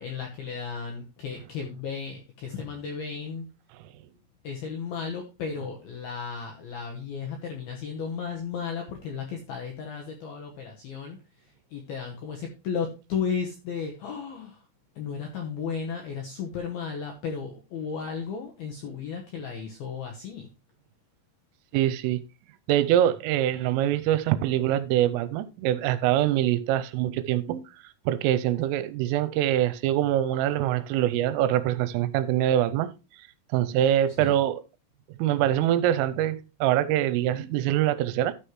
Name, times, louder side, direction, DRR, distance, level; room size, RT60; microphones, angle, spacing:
voice 1, 0.0-3.5 4.4-14.7 15.0-20.5 34.2-34.4, left 6 dB, 80° left, 2.2 m, -34 dB
voice 2, 21.7-22.2 22.7-27.6 28.1-32.9 33.5-34.6 35.2-38.3, right 12 dB, 85° right, 3.1 m, -24 dB
12.5 x 6.6 x 3.1 m
omnidirectional pair, 6.0 m